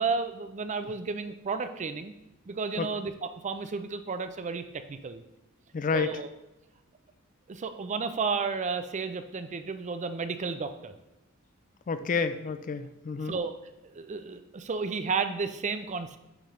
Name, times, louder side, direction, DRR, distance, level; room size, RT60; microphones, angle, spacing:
voice 1, 0.0-2.1 2.5-3.1 3.4-5.2 5.9-6.3 7.5-10.9 13.3-13.5 13.9-16.2, right 4 dB, 35° right, 9 dB, 0.5 m, -32 dB
voice 2, 5.7-6.2 11.9-13.4, left 5 dB, 35° left, 11 dB, 0.4 m, -29 dB
8.7 x 5.2 x 3.2 m, 0.96 s
head